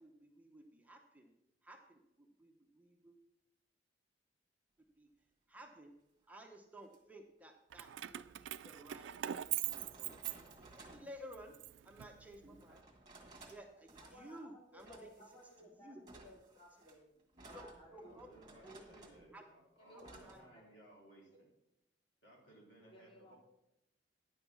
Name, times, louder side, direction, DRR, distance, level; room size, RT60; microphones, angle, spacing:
voice 1, 0.0-1.3 1.6-3.2 5.0-5.1 5.5-5.9 6.3-10.2 10.7-11.6 11.8-12.8 13.5-15.1 15.8-16.0 17.3-18.3 18.6-19.4 19.9-20.4, right 1 dB, 10° right, 2 dB, 0.9 m, -55 dB
sound 1, 6.8-7.0 8.6-8.7 9.4-11.1 12.6-13.6 13.9-14.4 14.8-15.6 16.1-19.3 20.0-20.4, right 2 dB, 25° right, 1.8 m, -58 dB
Keys jangling, 7.7-10.9 11.3-12.6, right 13 dB, 85° right, 0.3 m, -42 dB
voice 2, 14.0-17.0 17.4-18.2 18.5-18.7 19.8-20.7 21.3-21.4 22.8-23.4, equal, 30° left, -2 dB, 2.5 m, -60 dB
voice 3, 17.8-21.5 22.2-23.4, right 1 dB, 80° left, -3 dB, 3.8 m, -61 dB
10.0 x 6.0 x 6.1 m, 0.86 s
head